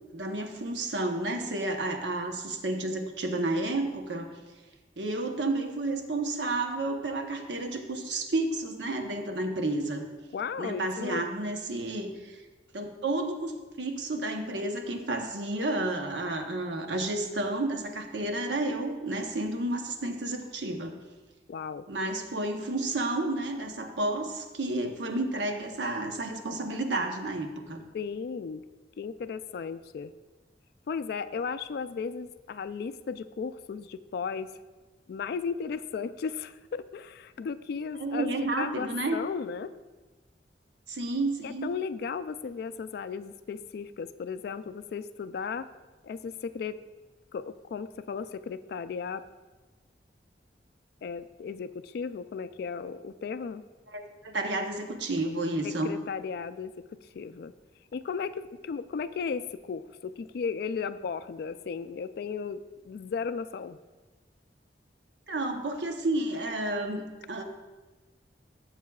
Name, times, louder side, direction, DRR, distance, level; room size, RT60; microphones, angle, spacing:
voice 1, 0.1-4.4 5.0-10.1 10.6-12.4 12.7-13.5 13.8-20.9 21.9-27.8 38.0-39.2 40.9-41.7 53.9-56.0 65.3-67.0 67.3-67.4, right 2 dB, 85° right, 4 dB, 0.9 m, -31 dB
voice 2, 10.3-11.2 21.5-21.8 27.9-28.6 29.0-30.1 30.9-34.5 35.1-39.7 41.4-45.7 46.0-46.8 47.3-49.2 51.0-53.6 55.6-56.7 57.1-57.5 57.9-63.8, left 5 dB, 60° left, 12 dB, 0.3 m, -35 dB
13.0 x 7.3 x 2.3 m, 1.2 s
head